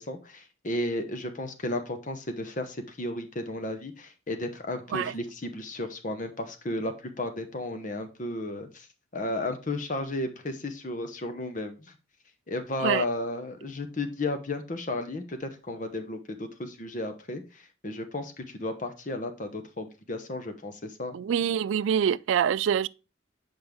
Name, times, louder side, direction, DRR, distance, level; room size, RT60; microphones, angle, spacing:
voice 1, 0.0-8.9 9.1-11.9 12.5-21.1, left 2 dB, 40° left, 0.8 m, -34 dB
voice 2, 21.1-22.9, right 8 dB, 75° right, 0.3 m, -25 dB
7.8 x 5.2 x 3.5 m
head